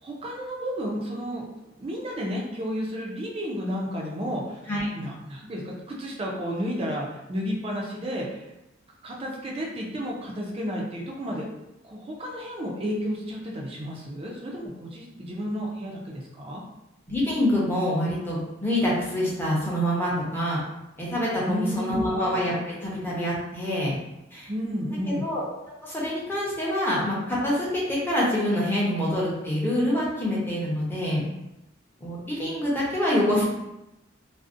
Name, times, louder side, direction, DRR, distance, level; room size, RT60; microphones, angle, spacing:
voice 1, 0.0-4.6 4.9-8.5 9.0-11.4 11.8-16.6 21.4-22.1 24.5-25.3, equal, 30° right, -2 dB, 0.4 m, -32 dB
voice 2, 17.1-20.6 21.0-23.9 24.3-24.5 25.2-25.4 25.8-31.2 32.0-33.4, left 1 dB, 10° left, -6 dB, 0.6 m, -26 dB
2.5 x 2.0 x 2.4 m, 0.92 s
head